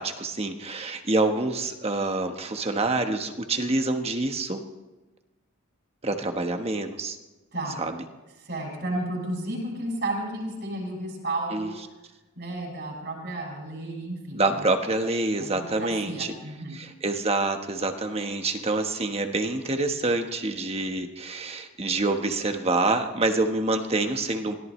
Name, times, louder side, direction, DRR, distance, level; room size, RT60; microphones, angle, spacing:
voice 1, 0.0-4.6 6.0-7.2 7.8-8.0 11.5-11.7 14.3-16.3 16.7-24.6, right 2 dB, 30° right, 6 dB, 1.3 m, -26 dB
voice 2, 7.5-7.8 8.4-11.8 12.4-14.6 15.4-16.8, right 1 dB, 55° right, -1 dB, 6.8 m, -32 dB
24.0 x 17.5 x 3.2 m, 1.1 s
head